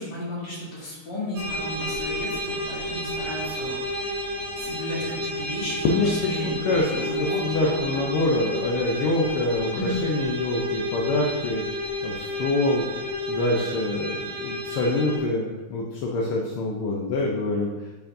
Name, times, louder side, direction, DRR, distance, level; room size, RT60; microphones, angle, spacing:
voice 1, 0.0-4.1 4.6-8.1 9.7-9.9, equal, 50° left, -8 dB, 2.7 m, -34 dB
sound 1, 1.3-15.2, left 1 dB, 85° right, 2.1 m, -31 dB
voice 2, 5.8-11.6 12.0-12.8 13.3-17.7, left 2 dB, 80° left, -2 dB, 1.6 m, -25 dB
8.7 x 4.7 x 2.6 m, 1.2 s
omnidirectional pair, 2.4 m